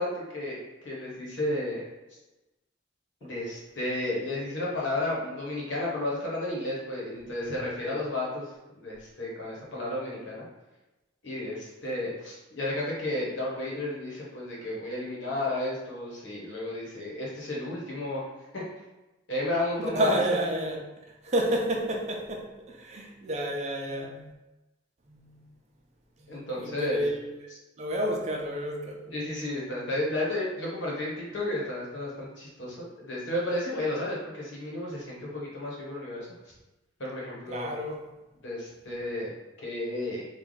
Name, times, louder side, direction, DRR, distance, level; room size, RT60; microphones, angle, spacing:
voice 1, 0.0-1.8 3.2-10.5 11.2-18.3 18.5-18.6 19.3-20.4 26.3-27.0 29.1-36.3 37.0-37.7 38.4-39.3 39.6-40.3, left 1 dB, 75° left, -5 dB, 1.3 m, -32 dB
voice 2, 19.8-20.8 21.2-24.3 25.1-25.4 26.2-27.4 27.8-29.0 37.5-38.0, right 1 dB, 35° right, 1 dB, 0.5 m, -30 dB
3.3 x 2.3 x 4.0 m, 1.0 s
head